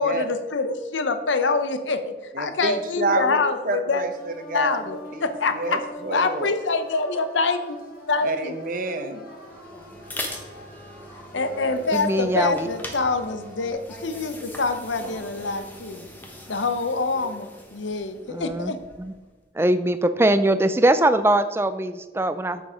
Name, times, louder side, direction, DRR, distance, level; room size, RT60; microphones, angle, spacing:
voice 1, 0.0-4.0 4.5-5.8 6.1-7.8 8.1-8.5 11.3-16.1 16.5-18.8, left 3 dB, 85° left, 9 dB, 0.8 m, -25 dB
voice 2, 2.3-3.4 3.6-6.5 8.2-9.2, right 3 dB, 45° right, 7 dB, 0.9 m, -28 dB
sound 1, 4.1-13.7, equal, 50° left, 1.9 m, -43 dB
sound 2, 9.3-19.2, left 1 dB, 10° left, 1.1 m, -41 dB
voice 3, 11.9-12.7 18.3-18.7 19.0-19.1 19.5-22.6, right 1 dB, 15° right, 12 dB, 0.4 m, -21 dB
7.5 x 6.9 x 5.0 m, 1.2 s
head